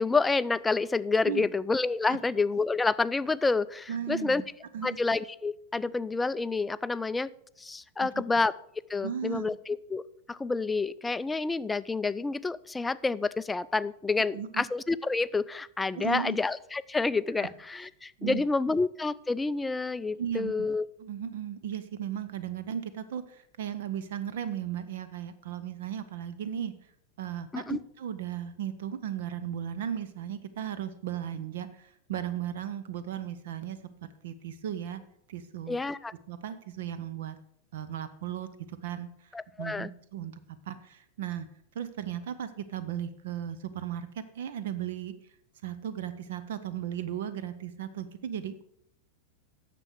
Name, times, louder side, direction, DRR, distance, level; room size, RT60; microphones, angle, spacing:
voice 1, 0.0-4.4 4.8-7.3 7.6-8.5 8.9-10.0 10.3-20.9 27.5-27.8 35.7-36.1 39.3-39.9, left 3 dB, 10° left, 16 dB, 0.3 m, -29 dB
voice 2, 3.9-4.5 4.7-5.0 8.0-8.2 9.0-9.4 14.3-14.6 15.9-16.4 17.4-17.5 18.2-18.4 20.2-20.7 21.0-26.7 27.2-33.8 34.2-35.0 35.3-35.8 36.3-37.4 37.7-40.3 40.7-41.5 41.7-45.1 45.6-48.6, right 9 dB, 55° right, 13 dB, 0.6 m, -36 dB
9.7 x 6.7 x 6.4 m, 0.73 s
figure-of-eight pair, 90°, 0 cm